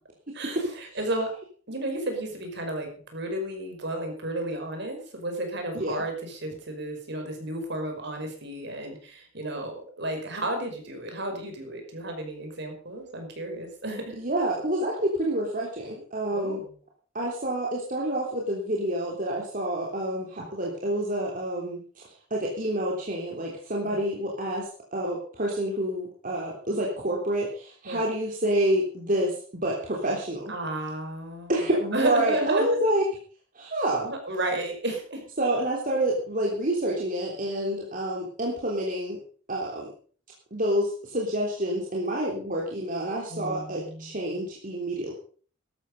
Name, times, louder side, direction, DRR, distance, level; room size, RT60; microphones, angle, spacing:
voice 1, 0.3-1.3 1.7-14.2 16.3-16.6 23.8-24.0 27.8-28.1 30.5-31.5 31.9-32.8 34.1-35.2 43.3-44.1, right 1 dB, 60° right, 4 dB, 5.3 m, -32 dB
voice 2, 14.1-16.6 17.1-21.8 22.3-29.3 29.6-30.5 31.5-33.0 33.6-34.1 35.4-39.2 39.5-39.9 40.5-45.1, right 1 dB, 45° right, -3 dB, 3.5 m, -28 dB
14.5 x 12.5 x 5.4 m, 0.43 s
head